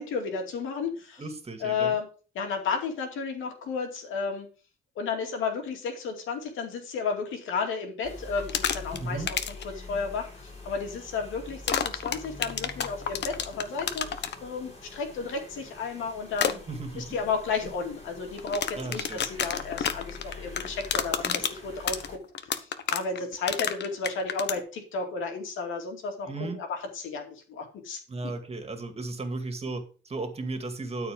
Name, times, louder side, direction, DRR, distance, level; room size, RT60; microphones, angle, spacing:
voice 1, 0.0-1.2 1.6-2.1 2.3-4.5 5.0-16.6 17.0-22.2 22.6-28.3, left 5 dB, 85° left, 4 dB, 2.5 m, -33 dB
voice 2, 1.2-1.9 9.0-9.3 16.7-17.1 18.8-19.2 26.3-26.6 28.1-31.1, right 3 dB, 30° right, 6 dB, 2.1 m, -35 dB
sound 1, 8.0-22.2, left 3 dB, 35° left, 5.2 m, -44 dB
sound 2, 8.4-9.0 9.3-9.6 11.7-14.3 16.3-16.5 18.4-24.6, left 8 dB, 60° left, 1.0 m, -29 dB
12.5 x 4.8 x 5.1 m, 0.37 s
cardioid pair, 90°, 20 cm